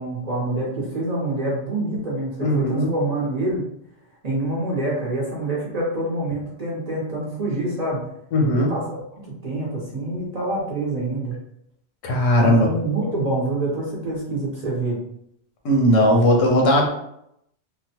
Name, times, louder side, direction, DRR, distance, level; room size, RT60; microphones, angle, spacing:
voice 1, 0.0-3.6 4.2-8.0 8.5-11.3 12.4-15.0, right 2 dB, 40° right, -5 dB, 0.7 m, -26 dB
voice 2, 2.4-2.9 8.3-8.7 12.0-12.7 15.6-16.9, equal, 85° left, 0 dB, 1.1 m, -17 dB
2.9 x 2.1 x 2.8 m, 0.77 s
omnidirectional pair, 1.3 m